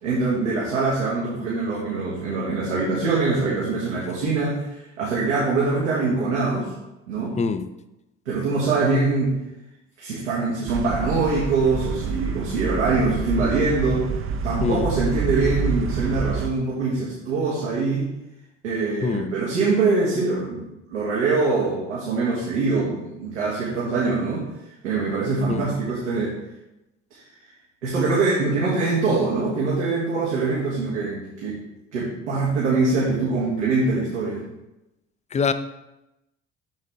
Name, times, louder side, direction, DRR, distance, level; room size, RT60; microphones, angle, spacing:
voice 1, 0.0-6.7 7.1-7.4 8.3-9.4 10.0-14.1 14.4-18.1 18.6-20.6 20.9-24.4 24.8-26.4 27.1-27.2 27.8-31.6 31.9-34.4, right 3 dB, 75° right, -7 dB, 1.8 m, -23 dB
voice 2, 7.4-7.7 14.6-14.9 19.0-19.3 25.5-25.7 35.3-35.5, left 5 dB, 20° left, 11 dB, 0.5 m, -24 dB
sound 1, 10.7-16.5, right 5 dB, 35° right, 0.7 m, -27 dB
7.4 x 6.4 x 3.6 m, 0.93 s
figure-of-eight pair, 55°, 36 cm